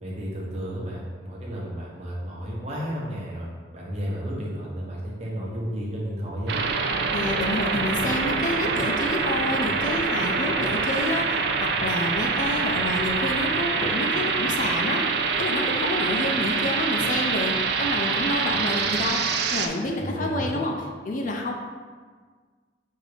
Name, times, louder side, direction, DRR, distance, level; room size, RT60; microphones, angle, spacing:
voice 1, 0.0-3.5 3.7-6.6 20.0-20.6, equal, 35° right, -5 dB, 0.9 m, -32 dB
sound 1, 6.5-19.7, right 5 dB, 60° right, 0.3 m, -25 dB
voice 2, 7.1-15.0 15.4-17.5 17.8-20.7 21.0-21.5, left 2 dB, 40° left, 1 dB, 0.4 m, -28 dB
6.3 x 2.5 x 3.3 m, 1.5 s
head